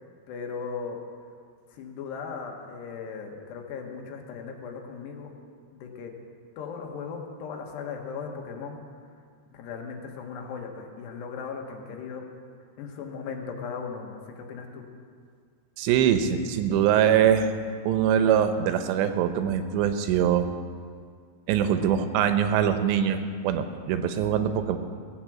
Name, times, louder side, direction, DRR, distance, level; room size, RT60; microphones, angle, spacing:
voice 1, 0.3-1.0 1.8-5.3 5.7-6.1 6.6-8.8 9.5-12.2 12.8-14.9, left 5 dB, 80° left, 2 dB, 3.4 m, -37 dB
voice 2, 15.8-17.5 17.9-20.5 21.5-24.8, right 9 dB, 85° right, 8 dB, 3.0 m, -23 dB
18.0 x 8.3 x 7.5 m, 2.1 s
omnidirectional pair, 4.9 m